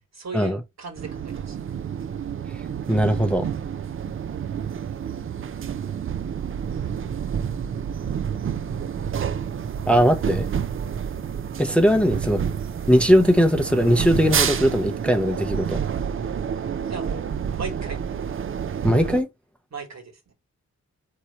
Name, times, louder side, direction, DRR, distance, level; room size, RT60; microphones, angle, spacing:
voice 1, 0.1-1.9 16.9-18.0 19.7-20.3, right 4 dB, 65° right, 1.5 m, -37 dB
sound 1, 1.0-19.2, right 8 dB, 45° right, 0.4 m, -29 dB
voice 2, 2.9-3.5 9.9-10.5 11.6-12.4 12.9-15.8 18.8-19.3, equal, 5° left, 0.6 m, -19 dB
4.5 x 2.8 x 4.0 m
wide cardioid pair, 85°, 29 cm